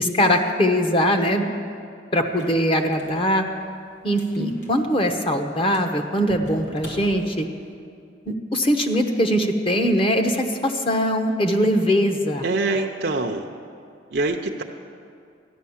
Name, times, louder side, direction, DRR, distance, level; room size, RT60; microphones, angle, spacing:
voice 1, 0.0-1.4 2.1-3.4 4.0-7.5 8.3-12.4, equal, 30° left, 4 dB, 1.0 m, -21 dB
sound 1, 2.2-7.7, left 1 dB, 75° left, 3.0 m, -45 dB
voice 2, 12.4-13.5 14.1-14.6, right 2 dB, 55° right, 1 dB, 0.6 m, -24 dB
14.0 x 10.5 x 7.2 m, 2.4 s
head